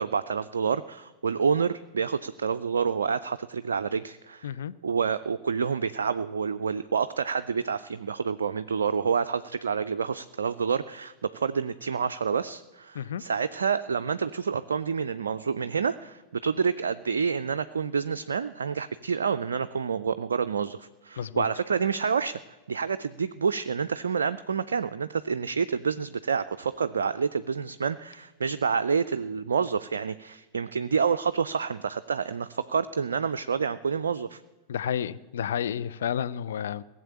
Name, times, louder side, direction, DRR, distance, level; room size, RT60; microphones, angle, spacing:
voice 1, 0.0-4.5 4.8-22.4 22.7-34.4, right 6 dB, 70° right, 10 dB, 0.4 m, -28 dB
voice 2, 34.7-36.8, left 9 dB, 60° left, 14 dB, 0.5 m, -31 dB
16.5 x 7.4 x 8.5 m, 1.2 s
figure-of-eight pair, 90°, 0 cm